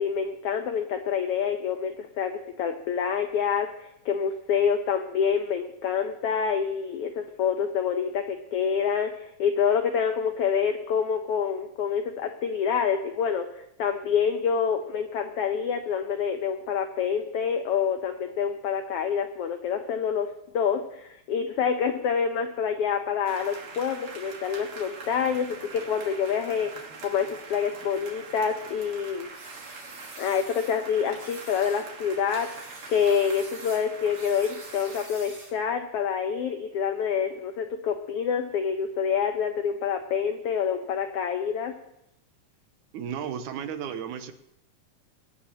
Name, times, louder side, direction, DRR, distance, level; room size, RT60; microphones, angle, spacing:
voice 1, 0.0-20.3 20.5-26.7 27.0-29.3 30.2-32.5 32.9-41.7, left 7 dB, 85° left, 6 dB, 1.3 m, -27 dB
sound 1, 23.3-35.1, right 4 dB, 50° right, 2.2 m, -43 dB
sound 2, 29.3-30.8 31.2-31.9 32.3-35.6, right 2 dB, 30° right, 2.4 m, -47 dB
voice 2, 42.9-44.3, right 8 dB, 80° right, 9 dB, 2.2 m, -34 dB
23.5 x 9.7 x 2.9 m, 0.81 s
omnidirectional pair, 3.6 m